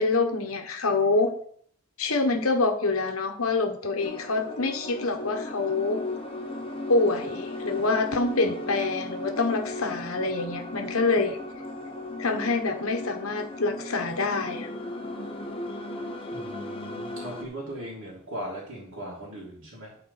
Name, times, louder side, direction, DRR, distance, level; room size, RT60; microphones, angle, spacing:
voice 1, 0.0-1.3 2.0-6.0 6.9-11.4 12.2-14.7, left 3 dB, 80° left, 5 dB, 1.2 m, -26 dB
sound 1, 4.0-17.5, left 2 dB, 25° left, 1.2 m, -36 dB
voice 2, 16.3-20.0, right 1 dB, 70° right, -7 dB, 2.9 m, -39 dB
11.5 x 4.4 x 5.8 m, 0.62 s
head